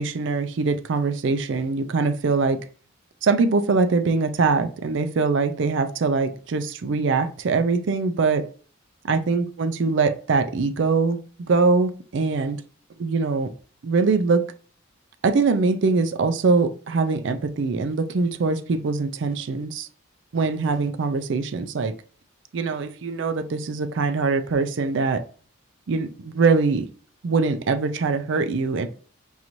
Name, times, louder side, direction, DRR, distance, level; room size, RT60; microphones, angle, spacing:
voice 1, 0.0-2.6 3.2-8.4 9.0-11.2 11.5-12.6 13.0-13.5 13.8-14.4 15.2-19.9 20.3-21.9 22.5-25.2 25.9-26.9 27.2-28.9, right 4 dB, 65° right, 10 dB, 0.4 m, -22 dB
5.5 x 2.5 x 3.0 m, 0.42 s
head